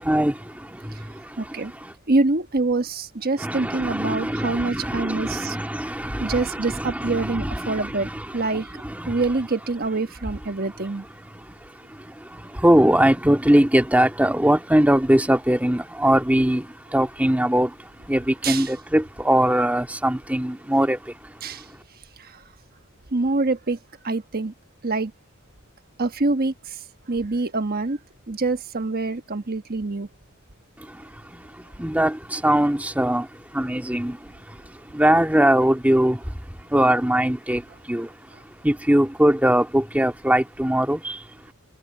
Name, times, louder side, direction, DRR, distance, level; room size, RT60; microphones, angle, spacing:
voice 1, 1.4-1.7 2.1-5.6 6.2-8.1 8.3-8.7 9.1-11.0 18.4-18.7 21.4-21.6 23.1-23.8 24.0-24.5 24.8-25.1 26.0-26.5 27.1-28.0 28.3-30.1, right 3 dB, 45° right, 1.3 m, -25 dB
voice 2, 3.4-7.8 12.6-16.6 16.9-17.7 18.1-21.0 31.8-33.2 33.6-34.1 34.9-36.2 36.7-37.6 37.9-38.1 38.6-41.0, right 1 dB, 5° right, 2.0 m, -20 dB
head